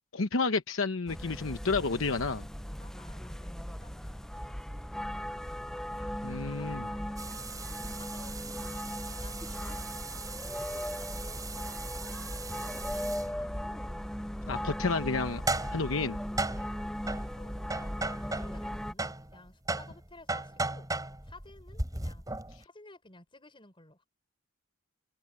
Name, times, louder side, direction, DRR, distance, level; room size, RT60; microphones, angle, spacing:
voice 1, 0.0-2.5 6.2-6.9 14.5-15.4 15.7-16.2, left 4 dB, 70° left, 1.0 m, -30 dB
sound 1, 1.1-18.9, equal, ahead, 0.6 m, -38 dB
voice 2, 2.8-4.3 6.0-9.9 10.3-12.3 12.8-14.0 14.6-15.1 15.8-16.0 16.5-16.8 17.4-20.9 21.2-22.3 22.6-24.1, left 2 dB, 25° left, 6.6 m, -55 dB
sound 2, 7.2-13.3 15.2-18.7 19.0-22.6, right 2 dB, 20° right, 5.7 m, -37 dB
head